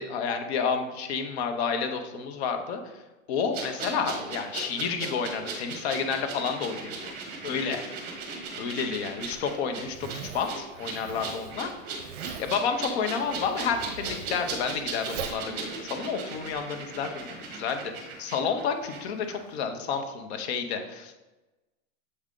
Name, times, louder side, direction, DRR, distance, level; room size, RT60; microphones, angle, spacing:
voice 1, 0.0-2.8 3.3-7.1 7.4-7.8 8.6-11.7 12.4-21.1, left 6 dB, 50° left, 6 dB, 0.8 m, -30 dB
sound 1, 3.5-19.0 19.3-19.4, right 4 dB, 35° right, 1.4 m, -38 dB
Zipper (clothing), 9.2-16.6, right 8 dB, 60° right, 0.7 m, -43 dB
7.9 x 3.7 x 3.7 m, 1.1 s
supercardioid pair, 155°, 42 cm